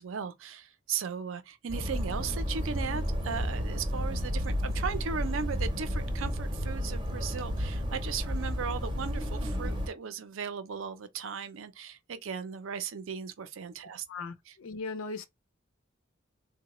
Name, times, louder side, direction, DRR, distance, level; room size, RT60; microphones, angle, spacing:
voice 1, 0.0-14.0 14.5-14.6, right 6 dB, 75° right, 0.5 m, -37 dB
sound 1, 1.7-9.9, equal, 25° right, 0.6 m, -32 dB
voice 2, 14.1-15.3, left 4 dB, 90° left, 0.5 m, -38 dB
3.8 x 2.1 x 2.9 m
head